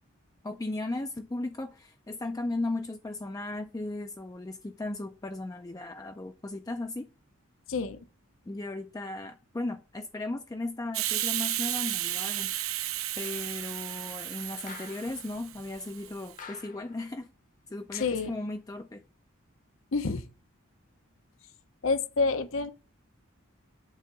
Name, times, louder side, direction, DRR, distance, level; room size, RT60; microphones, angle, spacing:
voice 1, 0.4-7.1 8.5-12.5 13.2-17.3 17.7-19.0, left 2 dB, 15° left, 0.4 m, -36 dB
voice 2, 7.7-8.0 17.9-18.3 19.9-20.3 21.8-22.7, left 4 dB, 65° left, 0.8 m, -28 dB
Hiss, 10.9-16.3, right 14 dB, 70° right, 0.7 m, -33 dB
sound 1, 14.7-15.3 16.4-17.0 17.9-18.4, left 5 dB, 40° left, 0.9 m, -47 dB
8.4 x 3.6 x 6.6 m
head